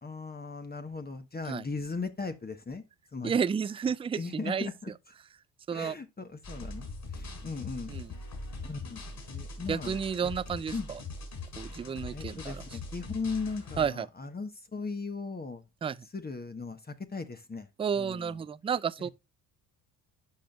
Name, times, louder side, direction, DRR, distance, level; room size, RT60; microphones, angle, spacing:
voice 1, 0.0-2.8 3.1-3.3 4.2-4.9 5.7-7.9 8.6-10.3 10.7-10.9 12.1-15.6 16.1-17.7 18.0-18.4 19.0-19.1, left 4 dB, 20° left, 1.1 m, -38 dB
voice 2, 3.2-4.7 5.7-5.9 7.9-8.1 9.7-11.0 11.6-12.8 13.8-14.1 15.8-16.0 17.8-19.1, right 7 dB, 15° right, 0.3 m, -31 dB
sound 1, 6.4-13.9, left 3 dB, 50° left, 4.3 m, -41 dB
11.5 x 5.0 x 2.3 m
hypercardioid pair, 55°, 46 cm